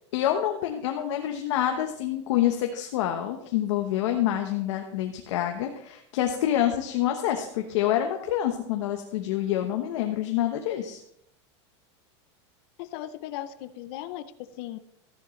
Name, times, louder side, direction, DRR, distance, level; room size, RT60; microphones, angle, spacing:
voice 1, 0.1-11.0, left 11 dB, 70° left, 4 dB, 1.1 m, -27 dB
voice 2, 12.8-14.8, left 13 dB, 55° left, 11 dB, 0.6 m, -37 dB
13.5 x 11.0 x 3.2 m, 0.77 s
supercardioid pair, 160°, 16 cm